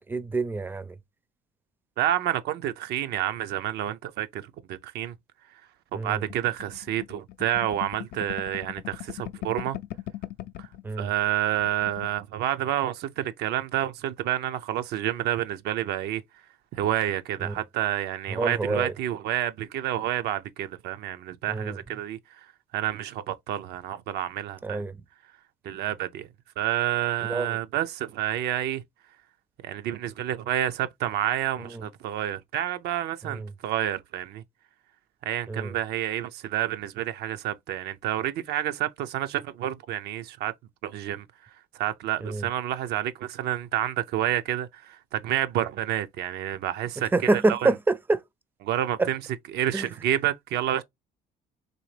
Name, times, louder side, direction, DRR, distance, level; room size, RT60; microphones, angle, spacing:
voice 1, 0.1-1.0 5.9-6.3 10.8-11.1 17.4-17.6 18.3-18.9 21.5-21.8 24.6-25.0 27.2-27.6 31.6-31.9 33.2-33.5 35.5-35.8 42.2-42.5 47.0-48.2 49.0-49.1 49.7-49.9, right 3 dB, 10° right, 0.4 m, -27 dB
voice 2, 2.0-5.1 6.0-9.8 10.6-10.7 11.0-16.2 16.7-22.2 22.7-24.8 25.6-26.3 26.6-28.8 29.6-34.4 35.2-40.5 40.8-41.3 41.7-47.1 47.5-47.6 48.6-49.2 49.5-50.8, right 12 dB, 75° right, 0.5 m, -29 dB
sound 1, 6.3-10.8 11.2-11.3 11.5-12.1, left 14 dB, 70° left, 0.4 m, -39 dB
4.0 x 2.8 x 3.2 m
cardioid pair, 110°, 17 cm